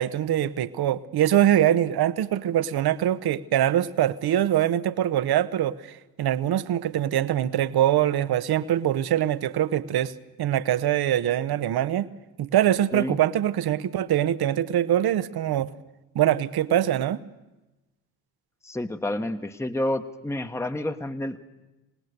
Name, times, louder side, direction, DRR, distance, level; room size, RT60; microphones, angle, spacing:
voice 1, 0.0-5.8 6.2-10.1 10.4-12.1 12.4-15.7 16.1-17.2, right 11 dB, 50° right, 15 dB, 1.1 m, -23 dB
voice 2, 18.6-21.4, left 1 dB, 5° left, 8 dB, 1.3 m, -29 dB
27.5 x 18.5 x 6.8 m, 1.1 s
hypercardioid pair, 50°, 49 cm